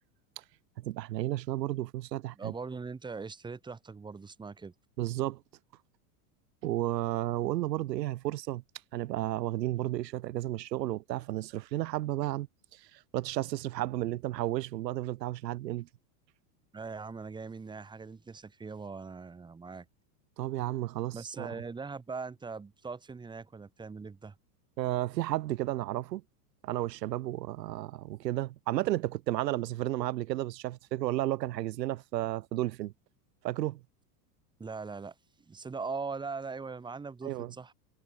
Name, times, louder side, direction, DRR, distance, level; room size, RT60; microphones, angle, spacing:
voice 1, 0.8-2.5 5.0-5.4 6.6-8.6 8.9-12.5 12.7-15.9 20.4-21.5 24.8-26.2 26.6-32.9 33.4-33.8 37.2-37.5, right 15 dB, 80° right, 5.0 m, -33 dB
voice 2, 2.3-4.7 16.7-19.9 21.1-24.4 34.6-37.7, right 4 dB, 10° right, 2.5 m, -41 dB
supercardioid pair, 165°, 49 cm